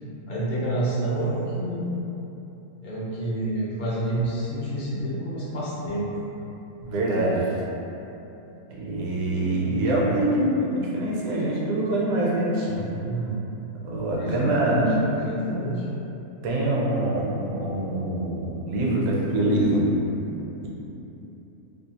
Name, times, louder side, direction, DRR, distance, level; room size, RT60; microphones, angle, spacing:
voice 1, 0.3-1.9 2.8-6.2 10.1-10.2 13.0-13.4 14.2-15.8, right 1 dB, 55° left, -9 dB, 0.5 m, -28 dB
voice 2, 6.8-7.5 8.8-12.9 13.8-14.9 16.4-19.8, right 1 dB, 75° right, -4 dB, 1.0 m, -24 dB
2.6 x 2.3 x 2.8 m, 3.0 s
omnidirectional pair, 1.5 m